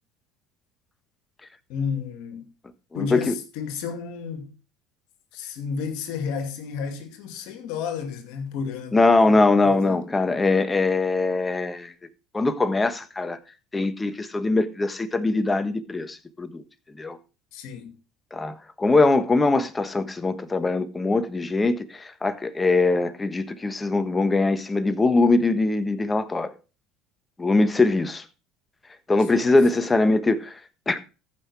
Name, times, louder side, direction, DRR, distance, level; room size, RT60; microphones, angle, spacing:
voice 1, 1.7-2.5 2.9-4.5 5.3-10.0 17.5-18.0 29.3-29.9, left 6 dB, 70° left, 2.3 m, -32 dB
voice 2, 2.9-3.3 8.9-11.9 12.3-13.4 13.7-16.6 17.0-17.2 18.3-26.5 27.4-28.2 29.1-30.6 30.9-31.2, left 3 dB, 20° left, 1.3 m, -22 dB
14.0 x 5.9 x 4.8 m
supercardioid pair, 90°, 0 cm